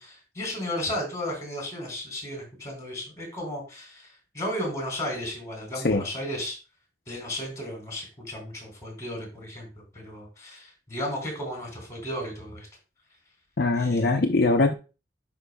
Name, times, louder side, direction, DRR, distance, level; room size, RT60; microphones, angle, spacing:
voice 1, 0.0-4.1 4.3-6.6 7.1-9.7 9.9-12.7 13.8-14.2, left 1 dB, 20° left, 1 dB, 3.5 m, -34 dB
voice 2, 13.6-14.7, left 3 dB, 60° left, 3 dB, 0.6 m, -22 dB
10.0 x 5.2 x 2.3 m, 0.31 s
head